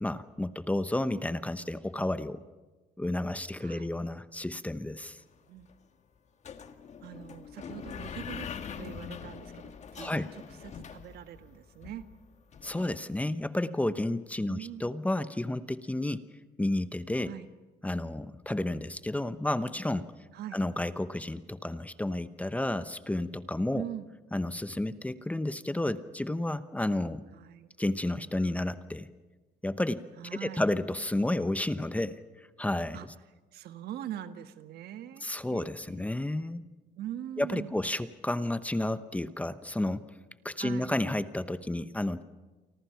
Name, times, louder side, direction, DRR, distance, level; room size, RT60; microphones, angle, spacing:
voice 1, 0.0-2.4 3.0-5.2 10.0-10.3 12.6-16.3 16.6-17.3 17.8-20.1 20.5-23.8 24.3-27.2 27.8-29.1 29.6-30.1 30.3-33.0 35.2-36.6 37.4-40.0 40.4-42.2, left 1 dB, 10° left, 12 dB, 0.9 m, -31 dB
voice 2, 3.6-3.9 5.5-5.7 7.0-8.5 8.8-10.2 10.6-12.1 14.4-14.9 17.2-17.5 20.3-20.6 23.7-24.1 27.3-27.7 30.2-30.6 32.9-33.1 33.5-35.3 35.5-36.0 37.0-37.8 40.6-40.9, right 11 dB, 70° right, 9 dB, 1.5 m, -42 dB
sound 1, 5.0-5.1 5.3-5.7 6.4-13.0, left 7 dB, 45° left, 1.6 m, -43 dB
30.0 x 24.5 x 5.8 m, 1.2 s
cardioid pair, 110°, 17 cm